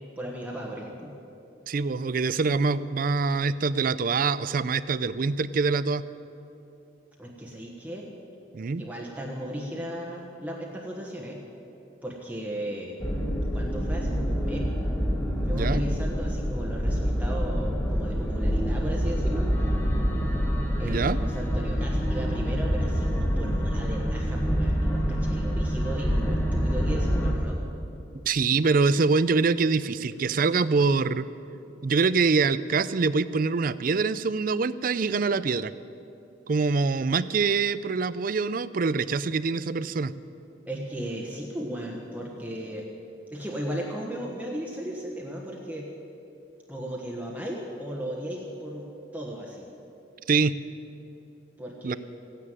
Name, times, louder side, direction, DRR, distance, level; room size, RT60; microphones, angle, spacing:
voice 1, 0.2-1.1 7.2-8.1 8.8-11.4 12.0-13.0 13.5-14.7 15.4-19.5 20.8-27.6 40.7-42.8 43.3-45.9 46.7-48.9 49.1-49.7 51.6-52.0, equal, 10° right, -2 dB, 1.3 m, -36 dB
voice 2, 1.7-6.0 8.5-8.9 15.5-15.8 20.8-21.2 28.3-31.3 31.8-35.7 36.5-40.1 50.3-50.6 51.8-52.0, right 4 dB, 45° right, 16 dB, 0.4 m, -24 dB
sound 1, 13.0-27.3, equal, 10° left, 1.3 m, -26 dB
15.0 x 9.8 x 9.1 m, 2.8 s
head